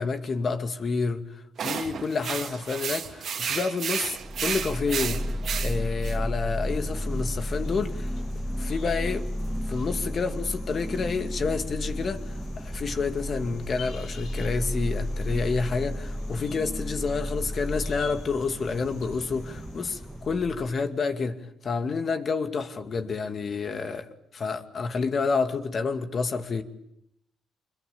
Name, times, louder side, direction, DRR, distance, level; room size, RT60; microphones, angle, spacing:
voice 1, 0.0-5.2 5.6-8.1 8.6-9.2 9.7-12.2 12.6-21.4 21.6-24.1 24.3-26.6, left 4 dB, 45° left, 2.3 m, -29 dB
sound 1, 1.6-6.1, right 7 dB, 60° right, 2.1 m, -32 dB
sound 2, 4.2-20.8, equal, 10° right, 2.2 m, -32 dB
sound 3, 6.7-20.9, left 4 dB, 80° left, 5.7 m, -50 dB
26.0 x 22.0 x 8.8 m
cardioid pair, 90°, 0 cm